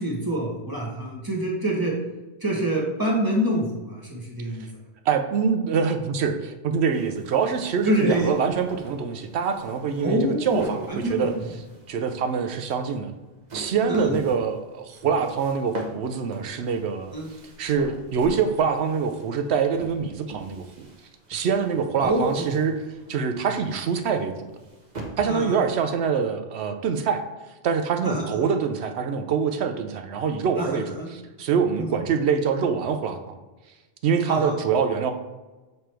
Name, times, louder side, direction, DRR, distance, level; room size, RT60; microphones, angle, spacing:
voice 1, 0.0-1.9 2.4-4.6 7.8-8.3 10.0-11.3 13.9-14.1 17.1-17.2 22.0-22.5 25.3-25.6 28.0-28.5 30.6-31.1 31.8-32.0 34.3-34.6, right 1 dB, 20° right, -3 dB, 1.2 m, -26 dB
voice 2, 5.1-11.3 11.9-13.1 13.5-17.1 17.6-20.9 21.3-22.8 23.1-24.5 25.2-27.2 27.6-33.4 34.0-35.1, right 6 dB, 75° right, 7 dB, 0.8 m, -25 dB
sound 1, 6.9-26.1, right 2 dB, 45° right, 1.0 m, -43 dB
6.9 x 3.2 x 4.4 m, 1.2 s
omnidirectional pair, 1.1 m